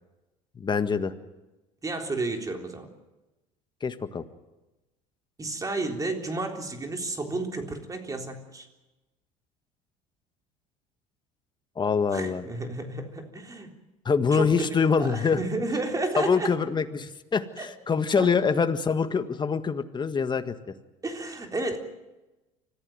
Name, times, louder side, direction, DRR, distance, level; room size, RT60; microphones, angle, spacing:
voice 1, 0.6-1.1 3.8-4.2 11.8-12.4 14.1-15.4 16.2-20.5, left 5 dB, 30° left, 10 dB, 1.7 m, -25 dB
voice 2, 1.8-2.9 5.4-8.7 12.1-13.7 14.3-14.7 15.0-16.5 17.6-17.7 18.2-18.3 21.0-21.8, right 2 dB, 20° right, 4 dB, 3.7 m, -32 dB
25.0 x 15.5 x 9.3 m, 1.0 s
supercardioid pair, 85°, 16 cm